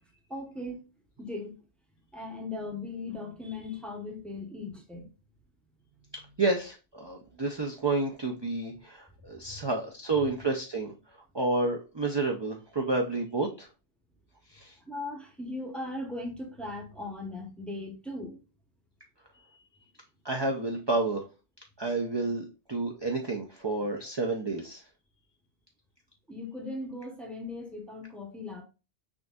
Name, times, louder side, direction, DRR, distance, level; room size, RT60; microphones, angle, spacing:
voice 1, 0.3-0.8 1.2-1.6 2.1-5.1 5.9-6.4 8.7-8.8 9.2-9.6 14.8-18.4 26.3-28.6, left 2 dB, ahead, 0.6 m, -38 dB
voice 2, 6.4-10.9 11.3-13.7 14.5-14.7 20.2-21.2 21.8-24.8, right 3 dB, 40° right, 0.4 m, -30 dB
6.1 x 2.6 x 2.3 m
omnidirectional pair, 1.1 m